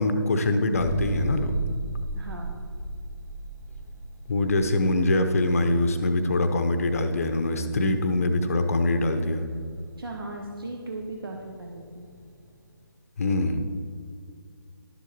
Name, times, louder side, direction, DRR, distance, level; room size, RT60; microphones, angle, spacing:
voice 1, 0.0-1.5 4.3-9.5 13.2-13.7, left 2 dB, 40° left, 7 dB, 0.7 m, -24 dB
sound 1, 0.8-12.4, right 2 dB, 10° right, 1.0 m, -35 dB
voice 2, 2.1-2.6 10.0-12.1, right 2 dB, 75° right, 0 dB, 1.1 m, -37 dB
11.5 x 7.1 x 4.3 m, 2.2 s
figure-of-eight pair, 150°, 12 cm